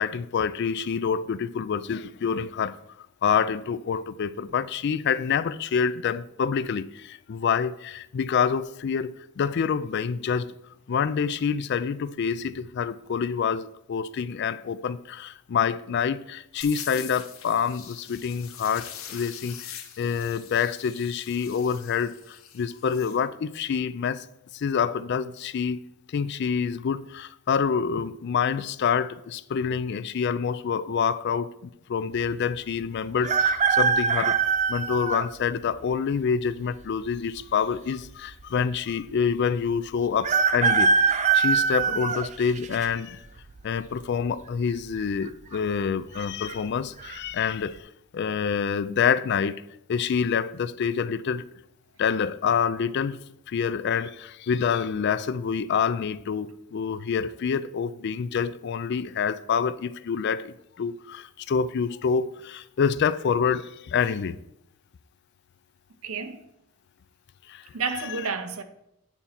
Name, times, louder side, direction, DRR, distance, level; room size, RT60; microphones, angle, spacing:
voice 1, 0.0-2.8 3.2-10.5 10.9-24.3 24.5-25.8 26.1-31.5 31.9-34.4 34.7-43.2 43.6-49.6 49.9-51.4 52.0-53.2 53.5-64.4 67.5-67.6, left 6 dB, 55° left, 0.3 m, -27 dB
sound 1, 16.6-23.2, left 9 dB, 85° left, 0.9 m, -43 dB
sound 2, 33.2-35.3 35.9-36.0 37.1-37.7 38.0-38.1 38.3-38.4 40.2-42.9 43.4-43.8 44.9-45.3 45.5-45.6 46.2-46.5 47.0-47.2, right 5 dB, 35° right, 0.4 m, -23 dB
voice 2, 66.0-66.4 67.7-68.6, right 5 dB, 90° right, 0.7 m, -31 dB
9.1 x 4.2 x 5.8 m
head